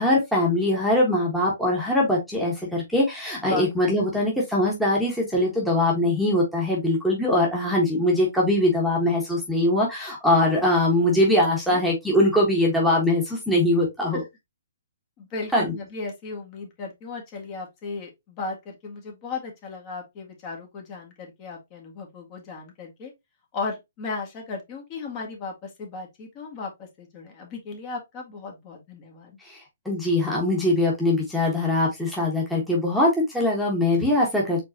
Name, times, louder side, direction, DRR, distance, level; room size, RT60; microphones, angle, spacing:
voice 1, 0.0-14.2 15.5-15.7 29.4-34.6, left 1 dB, ahead, 1.4 m, -22 dB
voice 2, 15.2-23.1 23.5-29.4, left 4 dB, 30° left, 1.8 m, -36 dB
4.6 x 3.9 x 2.8 m
hypercardioid pair, 150°, 0 cm